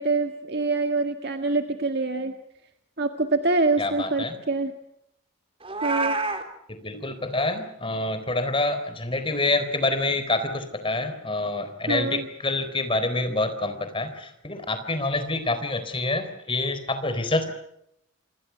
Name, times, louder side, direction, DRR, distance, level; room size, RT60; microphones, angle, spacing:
voice 1, 0.0-2.3 3.0-4.7 5.8-6.2 11.9-12.3, right 3 dB, 55° right, 6 dB, 1.8 m, -25 dB
voice 2, 3.8-4.4 6.7-17.5, left 2 dB, 25° left, 10 dB, 4.0 m, -27 dB
Meow, 5.6-6.4, right 3 dB, 25° right, 3.7 m, -27 dB
28.0 x 26.5 x 5.9 m, 0.77 s
head